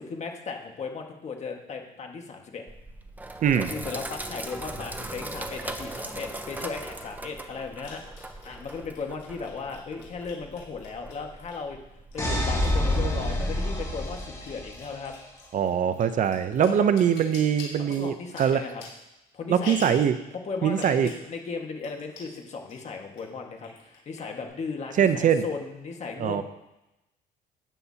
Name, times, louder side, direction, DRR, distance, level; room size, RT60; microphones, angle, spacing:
voice 1, 0.0-2.6 3.6-8.0 8.4-11.8 12.1-15.1 16.6-17.0 17.8-18.8 19.3-19.7 20.4-26.4, left 5 dB, 40° left, 2 dB, 1.7 m, -36 dB
Sink (filling or washing), 2.7-13.7, right 2 dB, 10° right, 0.8 m, -40 dB
sound 1, 6.1-6.2 7.8-11.7 12.1-13.7 13.9-20.1 20.7-21.3 21.5-21.6 21.8-22.4 22.7-23.2 23.6-24.5, left 4 dB, 85° left, 4.1 m, -45 dB
sound 2, 12.2-15.0, left 1 dB, 20° left, 4.3 m, -27 dB
voice 2, 15.5-18.6 19.5-20.2 20.6-21.1 25.0-25.4 26.2-26.4, right 8 dB, 50° right, 11 dB, 0.7 m, -22 dB
12.5 x 9.5 x 2.8 m, 0.93 s
cardioid pair, 110°, 17 cm